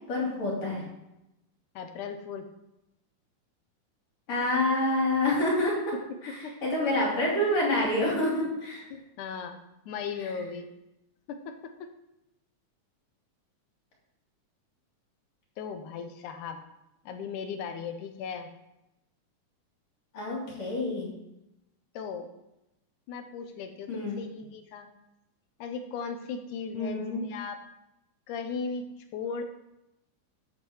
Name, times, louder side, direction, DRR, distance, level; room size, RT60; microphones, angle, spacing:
voice 1, 0.1-0.8 4.3-5.9 6.6-8.8 20.1-21.1 23.9-24.2 26.7-27.2, left 1 dB, 55° left, -4 dB, 4.3 m, -27 dB
voice 2, 1.8-2.5 6.3-6.7 8.9-10.7 11.3-11.9 15.6-16.6 17.1-18.5 21.9-22.3 23.1-24.9 25.6-27.6 28.3-29.4, left 5 dB, 80° left, 7 dB, 2.3 m, -37 dB
13.0 x 8.6 x 3.1 m, 0.91 s
omnidirectional pair, 3.6 m